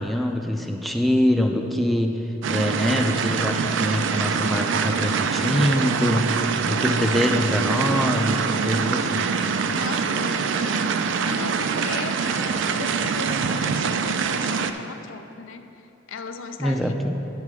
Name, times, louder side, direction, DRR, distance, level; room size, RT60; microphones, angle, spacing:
voice 1, 0.0-9.4 16.6-17.2, equal, ahead, 3 dB, 0.4 m, -24 dB
sound 1, 2.4-14.7, right 5 dB, 65° right, 0.4 m, -24 dB
voice 2, 9.7-16.9, left 4 dB, 75° left, 8 dB, 0.5 m, -37 dB
10.5 x 4.5 x 6.0 m, 2.9 s
head